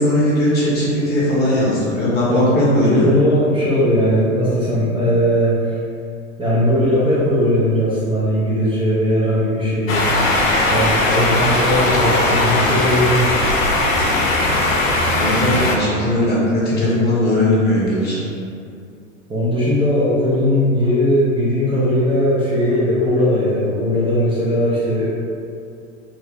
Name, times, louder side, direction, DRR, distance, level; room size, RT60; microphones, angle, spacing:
voice 1, 0.0-3.1 15.1-18.2, left 1 dB, 25° left, -7 dB, 0.9 m, -18 dB
voice 2, 2.8-5.6 6.4-10.3 10.7-13.4 19.3-25.1, equal, 15° right, -11 dB, 0.6 m, -18 dB
sound 1, 9.9-15.8, left 2 dB, 90° left, 0.5 m, -18 dB
2.7 x 2.1 x 3.4 m, 2.5 s
hypercardioid pair, 95°, 38 cm